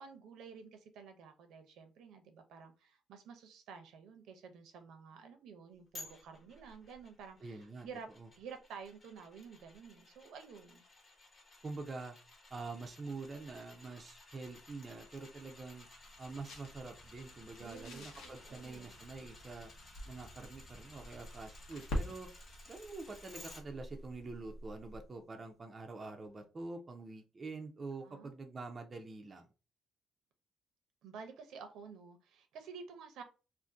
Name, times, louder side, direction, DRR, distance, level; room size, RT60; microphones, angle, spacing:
voice 1, 0.0-8.1 8.4-10.8 17.6-18.1 18.4-19.0 28.0-28.3 31.0-33.2, right 5 dB, 70° right, 0.6 m, -51 dB
sound 1, 5.9-23.6 24.0-24.1, left 2 dB, 30° left, 0.9 m, -57 dB
voice 2, 7.4-7.9 8.2-8.3 11.6-12.2 12.5-15.9 16.2-19.7 20.1-22.3 22.7-29.5, right 3 dB, 20° right, 0.4 m, -46 dB
sound 2, 14.5-25.2, left 1 dB, 85° left, 0.9 m, -47 dB
2.5 x 2.5 x 3.5 m
cardioid pair, 170°, 0 cm